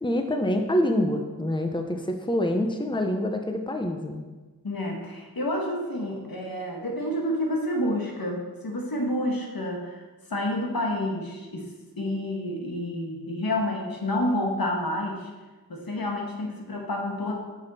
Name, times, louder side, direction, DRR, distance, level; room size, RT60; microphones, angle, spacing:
voice 1, 0.0-4.2, left 1 dB, 15° left, 5 dB, 0.8 m, -26 dB
voice 2, 4.6-10.0 10.3-11.7 12.0-15.3 15.7-17.4, left 1 dB, 80° left, 0 dB, 1.5 m, -29 dB
8.5 x 6.3 x 4.2 m, 1.3 s
wide cardioid pair, 45°, 35 cm